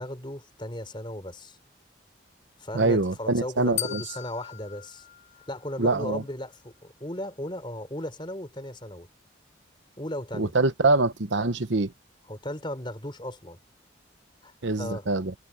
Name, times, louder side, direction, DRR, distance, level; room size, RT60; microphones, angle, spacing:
voice 1, 0.0-1.6 2.6-5.1 5.5-9.1 10.0-10.5 12.3-13.6 14.4-15.1, left 1 dB, 25° left, 4.3 m, -36 dB
voice 2, 2.7-4.0 5.8-6.2 10.4-11.9 14.6-15.3, right 3 dB, 75° right, 1.0 m, -24 dB
sound 1, 3.8-6.0, left 13 dB, 40° left, 4.0 m, -38 dB
head